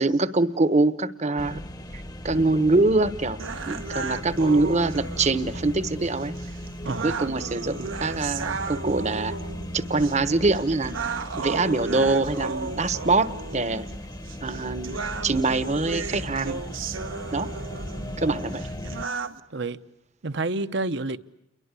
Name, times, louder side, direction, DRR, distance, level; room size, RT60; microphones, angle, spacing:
voice 1, 0.0-1.6 1.9-3.4 3.7-6.3 7.0-9.3 9.7-10.9 11.3-13.8 14.4-15.0 15.2-16.6 17.3-17.5 18.2-18.6, right 3 dB, 35° right, 1.0 m, -24 dB
sound 1, 1.4-19.1, left 1 dB, 20° left, 1.0 m, -37 dB
sound 2, 3.4-19.4, right 4 dB, 80° right, 1.1 m, -35 dB
voice 2, 20.2-21.2, right 2 dB, 60° right, 1.0 m, -29 dB
29.5 x 23.0 x 8.3 m
head